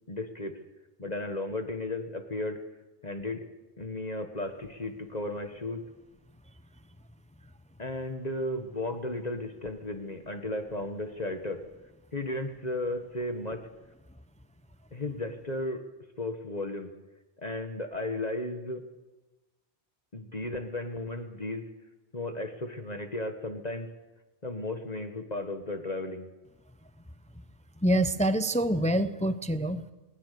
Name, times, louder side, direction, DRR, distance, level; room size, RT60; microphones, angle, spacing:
voice 1, 0.1-0.6 1.0-2.6 3.0-3.5 3.8-5.8 7.8-11.6 12.1-13.7 14.9-15.8 16.2-16.9 17.4-18.8 20.1-21.7 22.1-23.9 24.4-26.3, left 2 dB, 40° left, 6 dB, 1.7 m, -34 dB
voice 2, 27.8-29.8, right 1 dB, 10° left, 11 dB, 0.7 m, -26 dB
20.0 x 20.0 x 6.8 m, 1.1 s
omnidirectional pair, 1.1 m